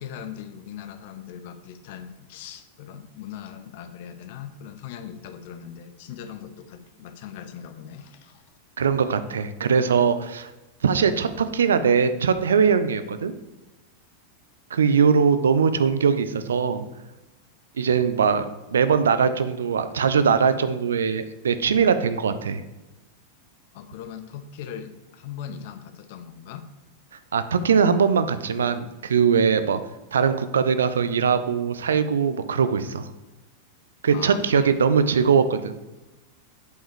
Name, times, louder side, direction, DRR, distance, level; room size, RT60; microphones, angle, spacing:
voice 1, 0.0-8.4 23.7-26.7 34.1-34.7, left 8 dB, 50° left, 10 dB, 0.7 m, -39 dB
voice 2, 8.8-10.5 10.8-13.3 14.7-16.9 17.8-22.6 27.3-29.8 30.1-33.0 34.0-35.8, right 6 dB, 65° right, 11 dB, 0.5 m, -21 dB
8.1 x 5.5 x 4.8 m, 1.1 s
figure-of-eight pair, 90°, 0 cm